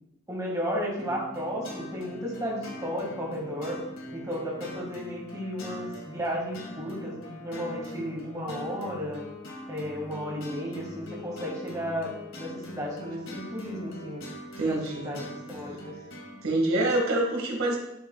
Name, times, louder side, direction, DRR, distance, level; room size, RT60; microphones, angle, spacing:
voice 1, 0.3-3.8 4.1-9.3 9.7-14.3 14.7-16.0, equal, 15° right, -2 dB, 1.8 m, -34 dB
sound 1, 1.0-16.4, left 1 dB, 65° left, 1.9 m, -42 dB
voice 2, 14.6-15.1 16.4-17.8, right 2 dB, 90° right, 0 dB, 1.8 m, -26 dB
11.5 x 6.3 x 2.3 m, 0.86 s
head